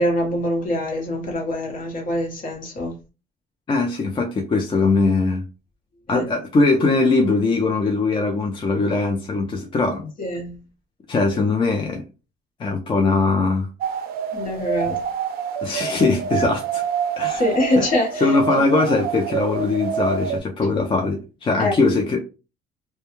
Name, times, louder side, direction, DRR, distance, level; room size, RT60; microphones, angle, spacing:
voice 1, 0.0-2.9 6.1-6.2 10.2-10.6 14.3-15.0 17.3-18.6 21.6-21.8, left 1 dB, 55° left, 1.1 m, -24 dB
voice 2, 3.7-5.4 6.1-10.1 11.1-12.0 12.6-13.7 15.6-16.8 17.2-17.4 17.8-17.9 18.2-22.3, left 3 dB, 30° left, 0.5 m, -21 dB
sound 1, 13.8-20.4, right 7 dB, 65° right, 0.4 m, -27 dB
2.2 x 2.2 x 2.9 m
cardioid pair, 110°, 17 cm